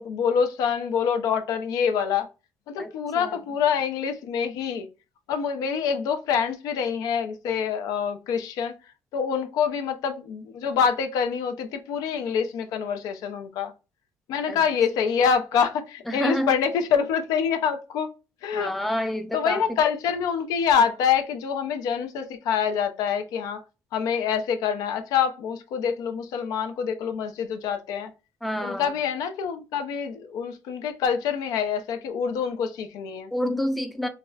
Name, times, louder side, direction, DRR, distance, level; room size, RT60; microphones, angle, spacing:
voice 1, 0.0-2.3 2.7-4.9 5.3-8.7 9.1-13.7 14.3-18.1 18.4-18.7 19.3-23.6 23.9-28.1 28.6-33.3, left 7 dB, 90° left, 0.6 m, -26 dB
voice 2, 2.8-3.4 14.5-14.6 16.1-16.5 18.5-19.8 28.4-28.9 33.3-34.1, left 1 dB, ahead, 0.4 m, -28 dB
4.7 x 2.1 x 2.3 m
cardioid pair, 155°, 6 cm